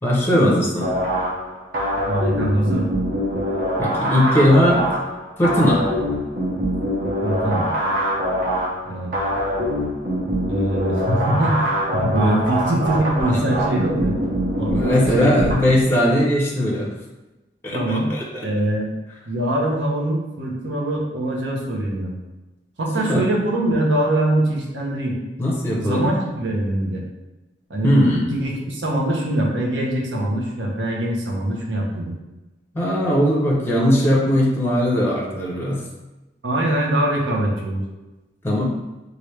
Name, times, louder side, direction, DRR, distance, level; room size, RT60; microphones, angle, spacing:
voice 1, 0.0-0.9 3.8-4.8 5.4-5.8 13.3-13.4 14.7-16.9 17.6-18.5 23.1-23.2 25.4-26.0 27.8-28.2 32.7-35.8 38.4-38.7, equal, 15° left, -3 dB, 0.5 m, -19 dB
sound 1, 0.8-15.5, equal, 55° right, 0.7 m, -24 dB
voice 2, 2.1-2.9 7.2-7.7 8.8-9.1 10.5-14.1 14.6-15.4 17.7-18.1 18.4-18.9 19.3-22.1 22.8-25.1 25.8-27.0 27.7-27.9 28.3-32.1 36.4-37.8, right 1 dB, 90° right, -2 dB, 0.7 m, -23 dB
3.1 x 2.5 x 3.1 m, 1.1 s
head